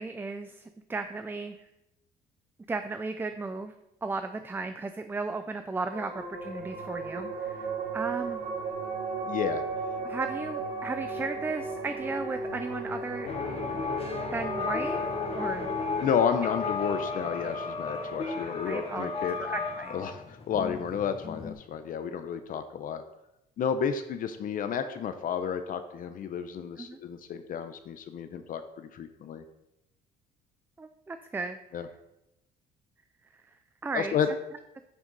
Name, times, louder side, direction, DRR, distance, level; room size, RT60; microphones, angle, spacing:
voice 1, 0.0-1.6 2.7-3.7 4.0-7.7 7.9-8.4 10.0-13.3 14.3-15.7 18.6-19.1 19.4-20.0 26.8-27.0 30.8-31.6 33.8-34.1, right 3 dB, 10° right, 9 dB, 0.4 m, -35 dB
sound 1, 5.9-18.7, right 3 dB, 65° right, 1.8 m, -37 dB
voice 2, 9.2-9.6 16.0-19.4 19.9-23.0 23.6-29.4 31.7-31.9 33.9-34.3, left 7 dB, 55° left, 9 dB, 0.7 m, -31 dB
sound 2, 13.2-21.5, left 4 dB, 35° left, 1.5 m, -34 dB
9.3 x 6.1 x 4.0 m, 0.88 s
cardioid pair, 110°, 17 cm